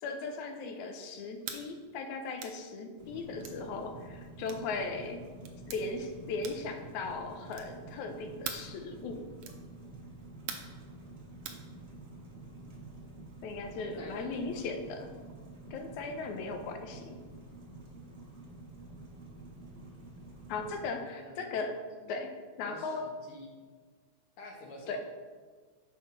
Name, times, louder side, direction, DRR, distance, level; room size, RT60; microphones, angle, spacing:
voice 1, 0.0-5.2 5.7-9.3 13.4-15.1 15.7-17.2 20.5-21.8 22.1-23.1 24.9-25.0, left 3 dB, 80° left, 6 dB, 2.0 m, -38 dB
sound 1, 1.4-1.6 2.4-2.6 3.4-3.6 4.4-4.7 5.4-5.8 6.4-6.7 7.5-7.8 8.4-8.7 9.4-9.6 10.5-10.8 11.4-11.6, right 7 dB, 75° right, 1.4 m, -42 dB
sound 2, 3.0-20.9, right 2 dB, 60° right, 0.6 m, -49 dB
voice 2, 13.7-14.7 20.9-22.2 22.6-23.5 24.4-25.0, left 1 dB, 55° left, -1 dB, 1.8 m, -49 dB
8.0 x 4.8 x 5.8 m, 1.5 s
omnidirectional pair, 3.6 m